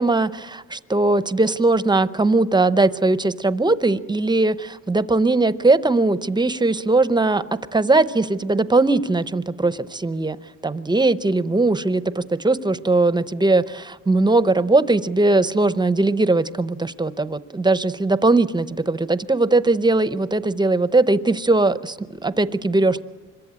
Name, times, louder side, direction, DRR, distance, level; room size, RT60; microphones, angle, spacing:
voice 1, 0.0-10.4 10.6-23.0, right 2 dB, 15° right, 14 dB, 0.7 m, -20 dB
26.0 x 22.5 x 8.7 m, 1.3 s
wide cardioid pair, 145°, 30 cm